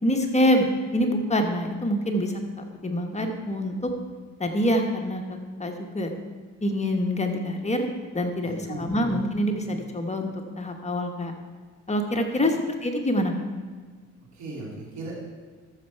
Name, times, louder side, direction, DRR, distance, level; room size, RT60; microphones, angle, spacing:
voice 1, 0.0-2.3 2.8-3.9 4.4-6.1 6.6-7.9 8.1-10.3 10.6-11.3 11.9-12.5 12.8-13.3, equal, 20° left, 3 dB, 1.2 m, -25 dB
voice 2, 8.4-9.2 12.5-12.7 14.2-15.2, right 2 dB, 70° right, -2 dB, 2.9 m, -38 dB
13.5 x 6.6 x 4.6 m, 1.5 s
cardioid pair, 90°, 30 cm